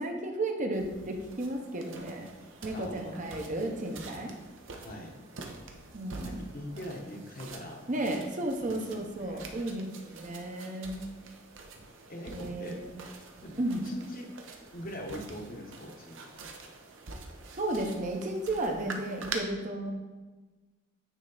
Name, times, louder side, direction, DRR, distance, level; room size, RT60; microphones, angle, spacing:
voice 1, 0.0-2.3 2.6-4.3 5.9-6.4 7.9-11.1 12.3-12.9 13.6-13.8 17.6-19.9, right 1 dB, 40° right, 3 dB, 0.8 m, -33 dB
sound 1, 0.7-19.4, right 4 dB, 80° right, 0.8 m, -46 dB
voice 2, 2.7-3.3 4.8-5.1 6.2-8.2 8.6-9.5 12.1-12.8 13.4-13.6 13.8-14.3 14.7-16.2, equal, 45° left, 1 dB, 1.0 m, -42 dB
9.1 x 3.3 x 3.9 m, 1.2 s
head